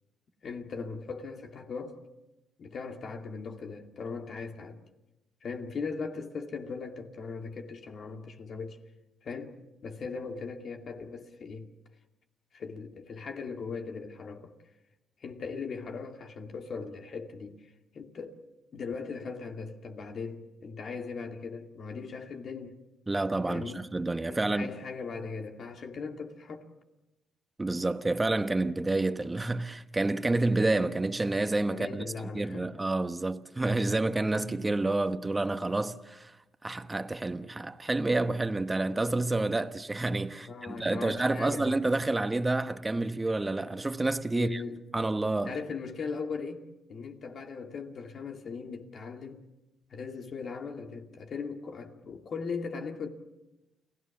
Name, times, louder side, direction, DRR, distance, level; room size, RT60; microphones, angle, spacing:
voice 1, 0.4-2.0 2.6-4.8 5.4-8.8 9.2-9.5 9.8-11.7 12.5-14.5 15.2-17.6 17.9-18.4 18.7-22.8 23.5-23.8 24.3-26.7 31.7-32.7 40.5-41.7 44.3-44.8 45.5-46.6 46.9-49.4 49.9-53.1, left 5 dB, 55° left, 2.4 m, -39 dB
voice 2, 23.1-24.7 27.6-32.0 32.3-36.3 36.6-44.6 44.9-45.5, right 2 dB, 20° right, 1.1 m, -29 dB
29.5 x 17.0 x 7.3 m
cardioid pair, 90°, 0 cm